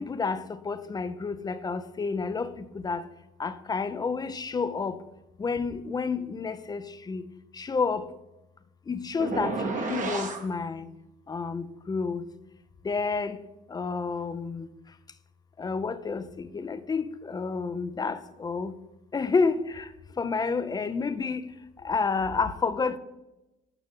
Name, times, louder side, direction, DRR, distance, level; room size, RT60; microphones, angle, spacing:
voice 1, 0.0-3.0 3.4-5.0 5.4-7.2 7.6-8.1 8.9-10.9 11.3-12.2 12.8-13.4 13.7-14.7 15.6-18.7 19.1-19.9 20.2-21.4 21.8-23.0, left 4 dB, 20° left, 0.6 m, -30 dB
sound 1, 9.2-10.5, right 4 dB, 45° right, 1.2 m, -31 dB
9.0 x 5.9 x 3.7 m
cardioid pair, 95°, 18 cm